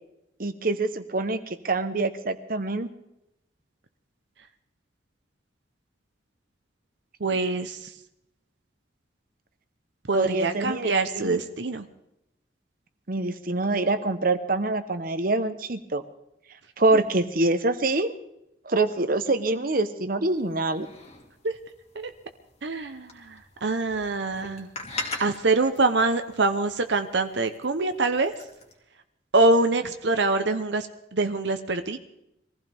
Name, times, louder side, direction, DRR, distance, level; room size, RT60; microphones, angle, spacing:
voice 1, 0.4-2.9 10.1-11.4 13.1-16.0 16.8-18.1 18.7-20.9, right 2 dB, 50° right, 10 dB, 1.0 m, -25 dB
voice 2, 7.2-7.8 10.1-11.9 21.4-21.5 21.9-22.1 22.6-24.7 25.2-28.3 29.3-30.9 31.1-32.0, right 3 dB, 75° right, 8 dB, 0.9 m, -24 dB
sound 1, 20.3-28.7, left 3 dB, 35° left, 2.4 m, -42 dB
23.5 x 15.0 x 3.6 m, 0.83 s
head